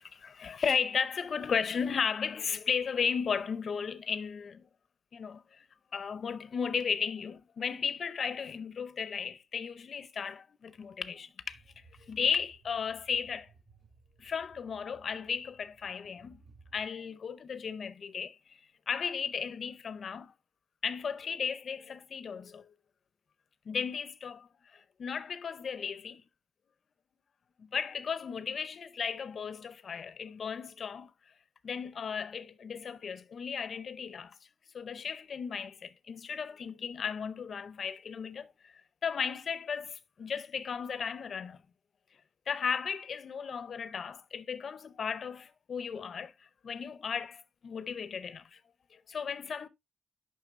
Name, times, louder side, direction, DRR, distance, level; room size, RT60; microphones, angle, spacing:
voice 1, 0.0-4.7 5.1-5.6 5.9-11.6 12.0-13.5 14.2-16.4 16.7-20.3 20.8-22.7 23.7-26.2 27.6-31.1 31.6-34.4 34.7-41.6 42.5-48.6 48.9-49.7, left 6 dB, 55° left, 0.6 m, -35 dB
sound 1, 11.5-16.9, right 4 dB, 60° right, 3.5 m, -61 dB
9.2 x 5.9 x 2.5 m
wide cardioid pair, 175°, 0 cm